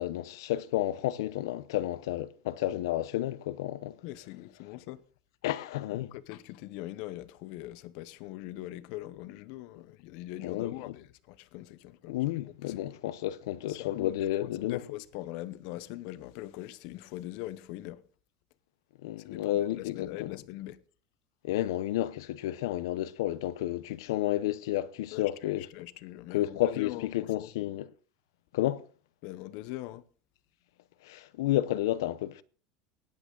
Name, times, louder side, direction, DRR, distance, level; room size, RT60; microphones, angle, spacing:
voice 1, 0.0-4.0 5.4-6.1 10.4-10.8 12.1-14.8 19.0-20.3 21.4-25.7 26.3-27.9 28.5-28.9 31.0-32.4, left 14 dB, 80° left, 0.7 m, -31 dB
voice 2, 4.0-5.0 5.9-12.9 13.7-14.2 14.4-18.0 19.2-20.8 25.1-27.7 29.2-30.0, left 16 dB, 45° left, 0.7 m, -42 dB
19.0 x 8.8 x 3.8 m
supercardioid pair, 180°, 2 cm